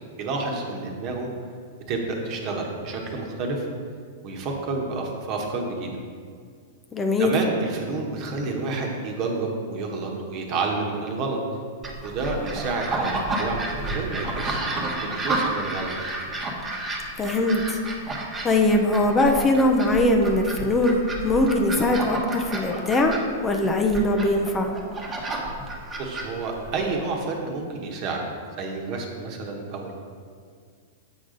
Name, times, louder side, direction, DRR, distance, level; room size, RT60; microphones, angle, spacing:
voice 1, 0.2-1.3 1.9-3.7 4.2-5.9 7.2-11.4 12.0-13.1 13.4-14.6 15.0-15.9 26.0-28.2 28.6-29.9, right 3 dB, 45° right, 1 dB, 1.2 m, -29 dB
voice 2, 6.9-7.3 17.2-17.8 18.4-23.2 23.4-24.7, left 1 dB, 20° left, 3 dB, 0.6 m, -21 dB
sound 1, 11.8-27.0, right 2 dB, 20° right, 1.2 m, -31 dB
7.7 x 5.0 x 3.9 m, 2.1 s
hypercardioid pair, 120°, 0 cm